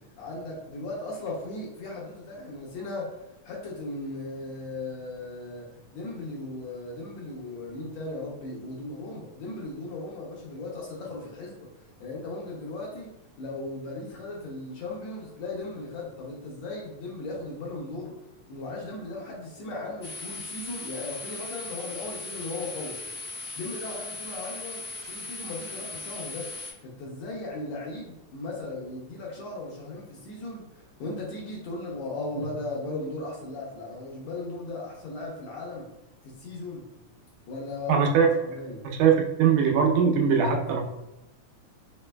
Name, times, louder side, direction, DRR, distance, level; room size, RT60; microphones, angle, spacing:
voice 1, 0.2-11.7 12.0-13.1 13.4-18.1 18.5-23.0 23.5-26.5 26.8-35.9 36.2-36.9 37.5-38.0 38.4-38.8, left 2 dB, 75° left, -2 dB, 1.7 m, -37 dB
sound 1, 20.0-26.7, left 3 dB, 55° left, 1.4 m, -38 dB
voice 2, 37.9-38.3 39.0-40.8, right 6 dB, 85° right, 1 dB, 2.2 m, -21 dB
5.0 x 3.1 x 2.2 m, 0.94 s
omnidirectional pair, 3.5 m